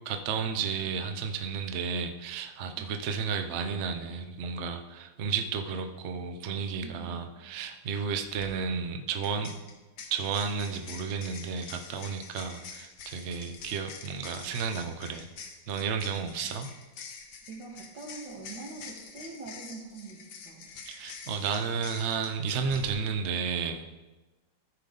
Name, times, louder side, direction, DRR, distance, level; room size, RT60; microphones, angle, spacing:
voice 1, 0.1-9.5 10.1-15.3 15.7-16.7 20.9-23.9, right 6 dB, 60° right, 7 dB, 0.7 m, -32 dB
voice 2, 6.8-7.3 17.5-20.7, right 4 dB, 80° right, -1 dB, 2.4 m, -44 dB
sound 1, 8.2-8.5 9.2-22.9, left 5 dB, 85° left, 1.7 m, -46 dB
14.5 x 5.1 x 3.9 m, 1.2 s
omnidirectional pair, 2.0 m